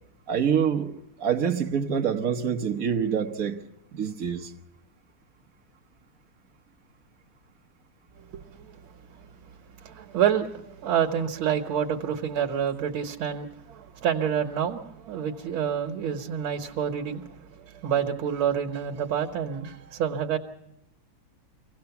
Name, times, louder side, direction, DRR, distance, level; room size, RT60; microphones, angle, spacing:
voice 1, 0.3-0.9 1.2-3.6 3.9-4.5, right 7 dB, 50° right, 1.2 m, -26 dB
voice 2, 8.3-8.8 9.8-17.2 17.8-20.4, right 8 dB, 70° right, 2.0 m, -28 dB
24.5 x 17.5 x 7.0 m
omnidirectional pair, 2.4 m